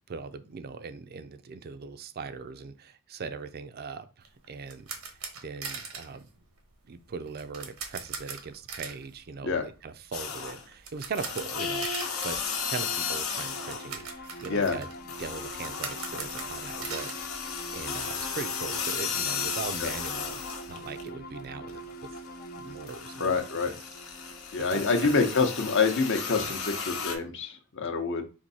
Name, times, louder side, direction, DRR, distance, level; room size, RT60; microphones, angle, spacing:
voice 1, 0.1-4.9 5.4-6.3 6.9-14.9 15.2-17.1 17.7-22.1 22.6-23.7 24.7-25.3 26.3-26.6, right 4 dB, 50° right, 11 dB, 0.4 m, -40 dB
sound 1, 4.2-18.2 18.4-18.6 19.0-19.1 19.3-20.9, right 5 dB, 85° right, 1.0 m, -42 dB
sound 2, 10.1-10.7 11.1-14.0 14.3-21.1 21.5-27.1, left 6 dB, 85° left, 1.0 m, -35 dB
sound 3, 11.9-25.4, equal, 45° left, 0.4 m, -44 dB
voice 2, 14.5-14.8 19.8-19.9 23.2-23.7 24.5-28.2, left 4 dB, 60° left, 6 dB, 0.8 m, -27 dB
4.5 x 2.7 x 4.0 m, 0.33 s
head